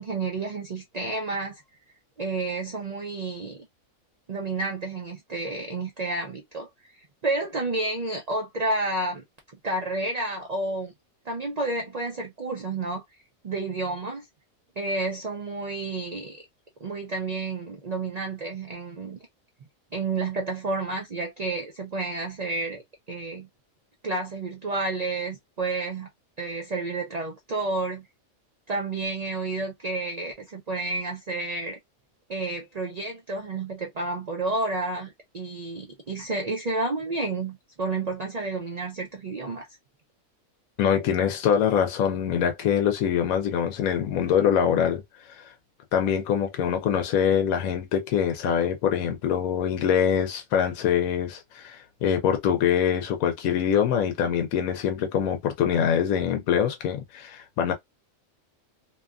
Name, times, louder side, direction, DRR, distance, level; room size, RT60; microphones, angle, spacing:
voice 1, 0.0-1.6 2.2-3.7 4.3-9.2 9.6-10.9 11.3-13.0 13.4-14.3 14.8-16.4 16.8-19.2 19.9-23.5 24.0-26.1 26.4-28.1 28.7-31.8 32.3-39.7, right 2 dB, 55° right, 0.4 m, -30 dB
voice 2, 40.8-45.4 45.9-57.7, left 8 dB, 85° left, 1.0 m, -24 dB
2.8 x 2.3 x 2.3 m
omnidirectional pair, 1.4 m